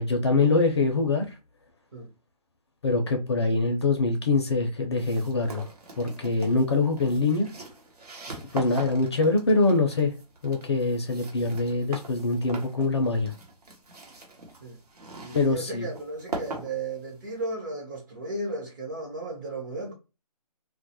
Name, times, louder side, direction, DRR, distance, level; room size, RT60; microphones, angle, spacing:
voice 1, 0.0-1.3 2.8-5.6 6.0-7.5 8.5-10.1 10.4-13.3 15.3-15.9, left 3 dB, 40° left, 0.5 m, -24 dB
sound 1, 5.0-17.5, right 3 dB, 65° right, 1.0 m, -42 dB
voice 2, 15.2-19.9, right 2 dB, 30° right, 0.7 m, -35 dB
2.3 x 2.0 x 2.7 m
figure-of-eight pair, 150°, 21 cm